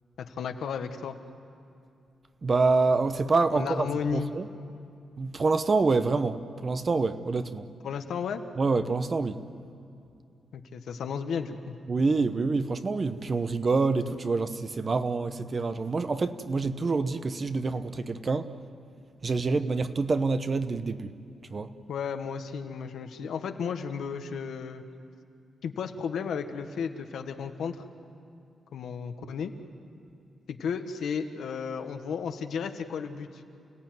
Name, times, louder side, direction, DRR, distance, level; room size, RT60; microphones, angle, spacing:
voice 1, 0.2-1.2 3.5-4.3 7.8-8.4 10.5-11.8 21.9-24.8 25.6-27.8 28.7-29.5 30.5-33.3, left 6 dB, 75° left, 7 dB, 1.5 m, -33 dB
voice 2, 2.4-4.5 5.2-7.7 8.6-9.4 11.9-18.5 19.2-21.1 21.5-21.7, right 3 dB, 30° right, 11 dB, 0.9 m, -26 dB
29.0 x 17.5 x 9.4 m, 2.5 s
wide cardioid pair, 145°, 0 cm